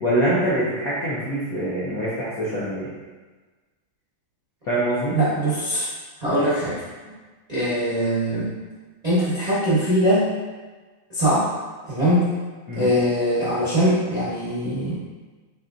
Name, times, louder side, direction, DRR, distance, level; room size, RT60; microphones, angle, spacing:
voice 1, 0.0-2.9 4.7-5.2 12.7-12.9, right 1 dB, 70° left, -8 dB, 0.9 m, -24 dB
voice 2, 5.1-5.9 6.2-6.8 7.5-8.5 9.0-10.3 11.1-11.5 11.9-12.3 12.8-15.0, equal, 55° right, -11 dB, 0.4 m, -21 dB
4.1 x 3.5 x 2.5 m, 1.3 s
omnidirectional pair, 2.4 m